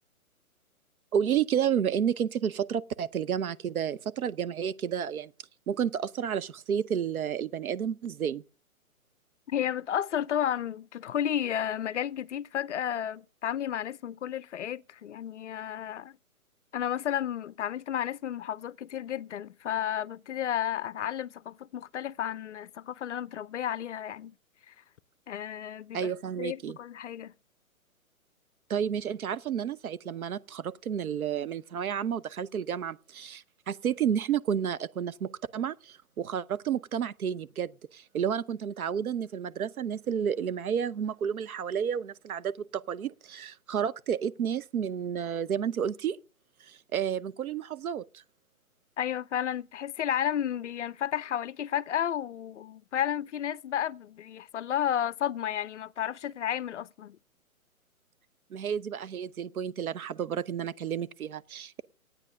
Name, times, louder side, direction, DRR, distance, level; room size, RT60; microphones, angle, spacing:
voice 1, 1.1-5.3 5.7-8.4 25.9-26.8 28.7-46.2 46.7-48.2 58.5-61.8, right 8 dB, 75° right, 0.7 m, -31 dB
voice 2, 9.5-16.2 16.7-24.3 24.7-24.8 25.3-26.1 26.4-27.3 49.0-57.2, left 10 dB, 55° left, 0.5 m, -32 dB
11.5 x 9.0 x 6.3 m
hypercardioid pair, 145°, 43 cm